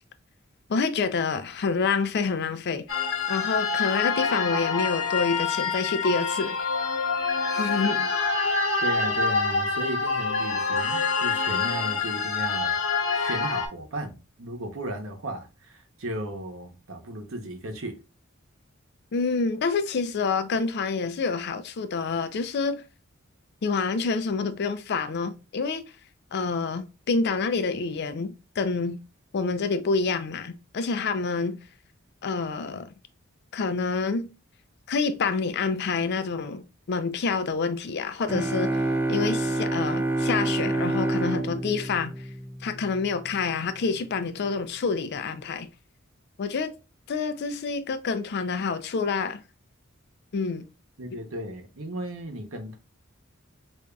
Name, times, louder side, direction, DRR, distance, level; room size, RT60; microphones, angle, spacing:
voice 1, 0.7-2.9 3.3-6.6 7.5-8.0 19.1-22.8 23.6-25.8 26.3-29.0 29.3-31.6 32.2-32.9 33.5-34.3 34.9-38.8 39.1-42.1 42.6-45.7 46.4-46.7 47.1-49.4 50.3-50.6, left 4 dB, 55° left, 0.4 m, -27 dB
sound 1, 2.9-13.7, left 4 dB, 70° left, 0.9 m, -26 dB
voice 2, 8.8-12.8 13.1-18.0 51.0-52.8, right 1 dB, 70° right, 0.8 m, -35 dB
sound 2, 38.3-43.0, right 2 dB, 10° right, 0.4 m, -27 dB
5.1 x 2.5 x 2.3 m
head